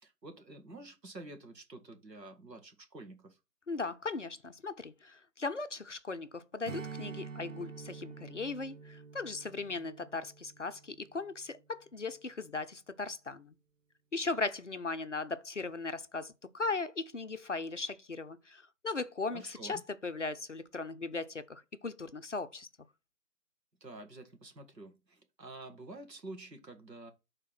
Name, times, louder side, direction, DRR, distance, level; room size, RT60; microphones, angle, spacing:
voice 1, 0.0-3.4 19.3-19.8 23.8-27.1, right 2 dB, 80° right, 1.8 m, -49 dB
voice 2, 3.7-13.6 14.1-22.7, left 3 dB, 50° left, 0.5 m, -38 dB
Strum, 6.6-11.4, right 5 dB, 55° right, 0.6 m, -47 dB
5.5 x 3.6 x 5.7 m
figure-of-eight pair, 155°, 49 cm